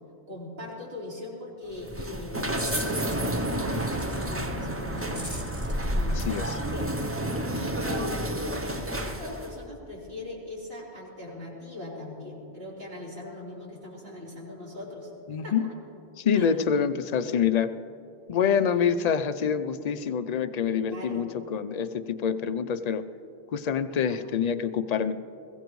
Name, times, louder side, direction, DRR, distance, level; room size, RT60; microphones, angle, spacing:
voice 1, 0.3-5.4 5.9-6.2 6.5-7.1 7.5-15.1 15.4-15.6 16.3-16.5 20.9-21.3 23.9-24.2, left 2 dB, 65° right, -6 dB, 3.8 m, -40 dB
sound 1, 1.7-9.6, right 1 dB, 15° right, 0.5 m, -30 dB
sound 2, 2.1-3.4 3.8-4.2 4.4-6.6 6.8-7.3, right 1 dB, 45° right, 2.8 m, -43 dB
voice 2, 6.1-6.6 15.3-15.6 16.2-17.7 18.3-23.0 23.5-25.1, left 7 dB, 50° left, 11 dB, 0.5 m, -26 dB
21.0 x 16.0 x 3.1 m, 2.7 s
omnidirectional pair, 1.1 m